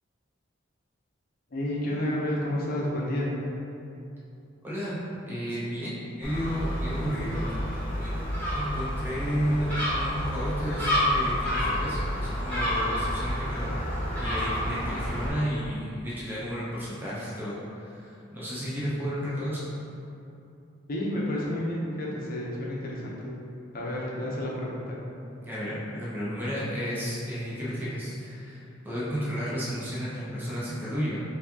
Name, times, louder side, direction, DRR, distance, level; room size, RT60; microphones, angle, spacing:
voice 1, 1.5-3.4 14.8-15.0 20.9-23.4 23.7-25.0, left 1 dB, 50° left, -4 dB, 0.7 m, -30 dB
voice 2, 4.6-5.0 5.3-7.6 8.0-13.8 14.2-19.6 25.4-31.2, equal, 10° right, -9 dB, 0.6 m, -32 dB
Gull seagull, 6.2-15.3, equal, 10° left, 1.1 m, -29 dB
4.5 x 2.7 x 2.8 m, 2.7 s
head